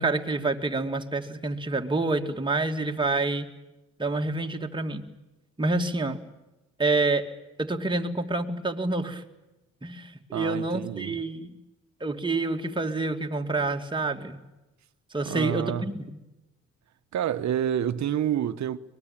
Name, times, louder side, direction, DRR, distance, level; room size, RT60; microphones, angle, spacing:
voice 1, 0.0-3.5 4.0-5.0 5.6-6.2 6.8-7.3 7.6-9.2 9.8-11.5 12.0-14.4 15.1-16.2, right 3 dB, 15° right, 2.5 m, -28 dB
voice 2, 10.3-11.2 15.2-15.8 17.1-18.8, right 10 dB, 65° right, 1.3 m, -28 dB
23.5 x 21.0 x 9.0 m
cardioid pair, 90°, 30 cm